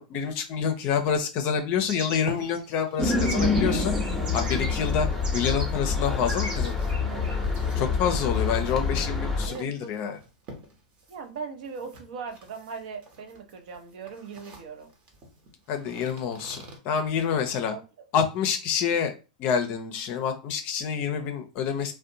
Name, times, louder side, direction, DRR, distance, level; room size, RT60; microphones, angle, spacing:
voice 1, 0.0-3.9 4.3-5.1 5.3-6.8 7.8-10.2 15.7-17.7 18.1-19.1 19.4-21.9, left 7 dB, 45° left, 6 dB, 0.5 m, -27 dB
sound 1, 1.9-4.9 5.2-5.7 5.9-7.4, right 1 dB, 90° right, 1.0 m, -37 dB
sound 2, 2.1-16.8, right 1 dB, 35° right, 0.9 m, -48 dB
sound 3, 3.0-9.5, left 4 dB, 5° left, 0.7 m, -26 dB
voice 2, 7.0-7.7 9.5-10.2 11.1-14.9 17.7-17.8, right 5 dB, 65° right, 6 dB, 0.6 m, -40 dB
2.5 x 2.1 x 2.7 m, 0.31 s
hypercardioid pair, 110°, 4 cm